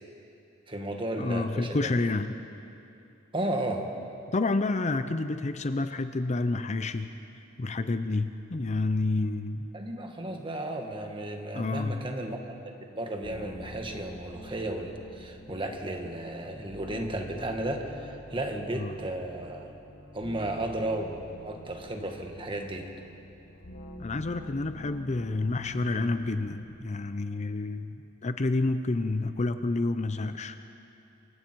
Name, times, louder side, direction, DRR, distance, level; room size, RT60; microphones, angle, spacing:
voice 1, 0.7-1.9 3.3-3.9 9.7-12.6 12.9-19.7 20.1-22.9, right 1 dB, 25° right, 3 dB, 1.9 m, -34 dB
voice 2, 1.2-2.4 4.3-7.1 7.6-9.6 11.5-12.1 18.7-18.9 24.0-30.6, left 2 dB, 35° left, 10 dB, 0.6 m, -29 dB
sound 1, 13.2-27.0, left 1 dB, 60° left, 1.4 m, -47 dB
28.0 x 23.0 x 4.6 m, 2.7 s
head